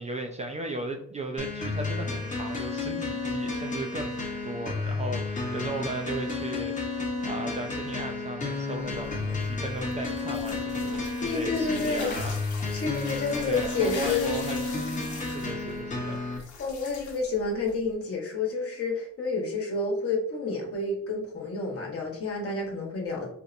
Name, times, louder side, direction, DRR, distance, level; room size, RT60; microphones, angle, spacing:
voice 1, 0.0-6.9 7.2-12.8 13.5-14.7 15.2-16.2, right 2 dB, 25° right, 2 dB, 0.3 m, -36 dB
sound 1, 1.4-16.4, left 3 dB, 25° left, 0.9 m, -32 dB
sound 2, 8.8-17.9, left 4 dB, 75° left, 0.9 m, -43 dB
voice 2, 11.2-12.1 12.7-14.3 16.6-23.3, left 3 dB, 50° left, 0 dB, 1.1 m, -29 dB
4.1 x 2.0 x 2.5 m, 0.68 s
cardioid pair, 90°, 30 cm